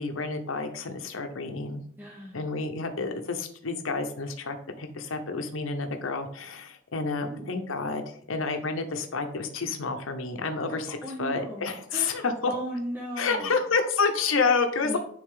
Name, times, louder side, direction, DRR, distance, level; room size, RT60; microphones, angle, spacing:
voice 1, 0.0-1.8 2.3-12.5 13.2-15.0, left 4 dB, 75° left, 6 dB, 0.8 m, -29 dB
voice 2, 2.0-2.5 7.1-7.5 10.7-13.6 14.8-15.0, right 1 dB, 10° right, -3 dB, 0.9 m, -37 dB
9.9 x 3.5 x 3.7 m, 0.62 s
head